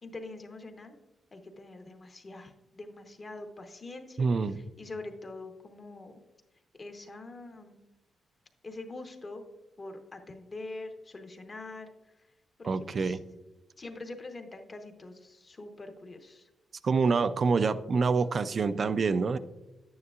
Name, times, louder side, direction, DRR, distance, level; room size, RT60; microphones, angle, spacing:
voice 1, 0.0-1.0 1.3-6.2 6.8-7.8 8.6-9.4 9.8-12.1 12.6-13.2 13.8-16.5, left 2 dB, 25° left, 6 dB, 0.9 m, -44 dB
voice 2, 4.2-4.6 12.6-13.2 16.8-19.4, right 4 dB, 35° right, 14 dB, 0.4 m, -26 dB
10.5 x 9.4 x 2.4 m, 1.0 s
wide cardioid pair, 160°, 0 cm